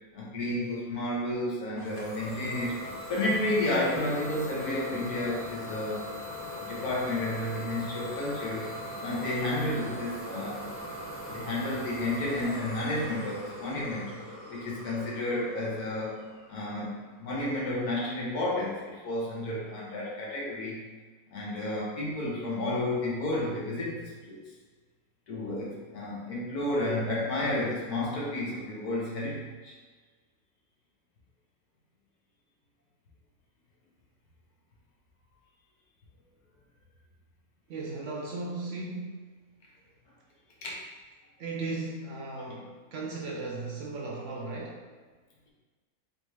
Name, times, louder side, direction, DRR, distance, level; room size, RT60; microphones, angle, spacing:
voice 1, 0.1-2.7 3.1-6.1 6.6-8.7 9.0-10.8 11.3-16.2 16.5-20.8 21.3-24.4 25.3-29.7 40.6-40.7, left 1 dB, 80° left, -4 dB, 1.6 m, -31 dB
Idling / Domestic sounds home sounds, 1.8-17.3, left 1 dB, 55° left, 1.2 m, -40 dB
voice 2, 37.7-39.3 41.4-44.9, right 3 dB, 65° right, -2 dB, 0.8 m, -36 dB
3.8 x 3.7 x 3.1 m, 1.4 s
omnidirectional pair, 1.6 m